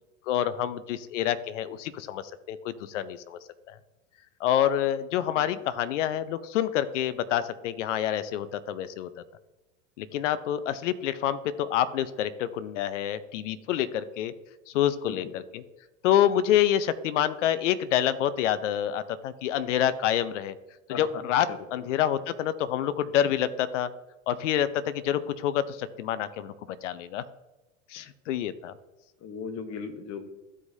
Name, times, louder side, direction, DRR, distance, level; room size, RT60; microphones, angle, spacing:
voice 1, 0.3-3.4 3.7-3.8 4.4-9.1 10.0-14.3 14.7-15.6 16.0-20.5 20.9-23.9 24.3-26.5 26.8-27.2 27.9-28.7, left 10 dB, 70° left, 14 dB, 0.8 m, -27 dB
voice 2, 20.9-21.2 29.2-30.3, left 6 dB, 40° left, 8 dB, 1.4 m, -37 dB
14.5 x 4.9 x 2.7 m, 1.1 s
hypercardioid pair, 95°, 38 cm